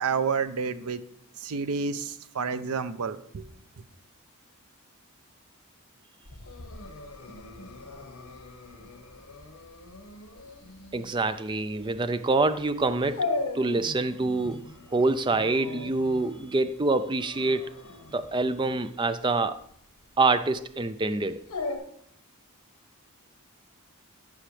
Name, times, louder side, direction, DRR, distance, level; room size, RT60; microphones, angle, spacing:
voice 1, 0.0-1.0 1.4-3.5, right 5 dB, 75° right, 13 dB, 0.6 m, -29 dB
Dog, 6.2-21.8, left 3 dB, 75° left, 1.4 m, -39 dB
voice 2, 10.9-13.3 13.5-14.6 14.9-17.7 18.1-19.6 20.2-21.4, right 3 dB, 20° right, 12 dB, 0.4 m, -26 dB
15.0 x 5.8 x 3.3 m, 0.69 s
head